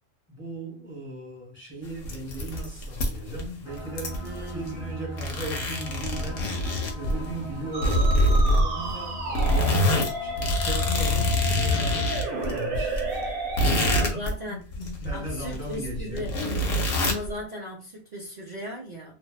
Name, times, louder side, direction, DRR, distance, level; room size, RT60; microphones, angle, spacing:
voice 1, 0.3-6.5 6.9-13.0 13.6-16.3, equal, 10° left, 0.9 m, -37 dB
sound 1, 1.9-3.5 3.7-4.9 5.2-7.4 7.8-8.9 9.4-14.4 14.7-17.3, left 1 dB, 70° left, 1.0 m, -25 dB
sound 2, 3.6-10.9, equal, 45° left, 0.8 m, -39 dB
voice 2, 4.2-4.9 13.9-14.7 15.1-16.3 17.0-19.1, equal, 50° right, 0.5 m, -37 dB
Musical instrument, 7.7-14.1, right 1 dB, 85° right, 1.1 m, -32 dB
2.5 x 2.1 x 2.3 m
omnidirectional pair, 1.4 m